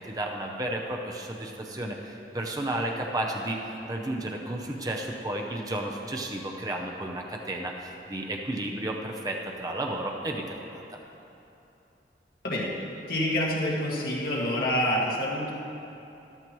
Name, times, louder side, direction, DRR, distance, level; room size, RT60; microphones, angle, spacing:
voice 1, 0.0-3.6 3.8-10.8, right 1 dB, 20° right, 0 dB, 0.7 m, -32 dB
voice 2, 13.1-15.5, left 1 dB, 55° left, -5 dB, 2.0 m, -27 dB
13.5 x 11.5 x 3.1 m, 2.9 s
head